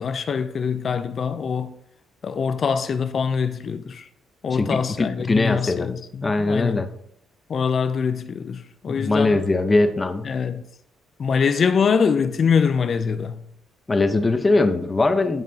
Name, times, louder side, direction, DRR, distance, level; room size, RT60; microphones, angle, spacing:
voice 1, 0.0-1.7 2.2-4.1 4.4-6.8 7.5-9.4 10.2-10.6 11.2-13.4, left 6 dB, 50° left, 0.5 m, -23 dB
voice 2, 4.5-5.9 6.2-6.9 8.9-10.3 13.9-15.4, left 2 dB, 25° left, 0.9 m, -21 dB
16.0 x 5.9 x 2.9 m
cardioid pair, 90°, 0 cm